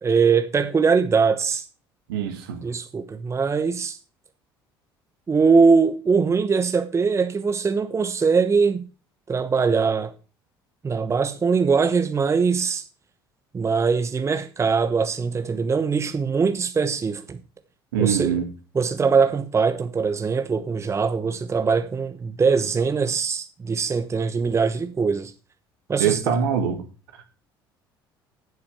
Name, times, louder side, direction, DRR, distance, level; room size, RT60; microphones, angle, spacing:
voice 1, 0.0-1.6 2.6-4.0 5.3-8.8 9.3-10.1 10.8-12.9 13.5-17.4 18.0-18.4 18.7-25.3 25.9-26.2, right 5 dB, 25° right, 1.0 m, -22 dB
voice 2, 2.1-2.6 17.9-18.5 26.0-26.8 27.2-27.3, right 8 dB, 70° right, 2.2 m, -23 dB
8.8 x 7.8 x 6.0 m
figure-of-eight pair, 60°, 12 cm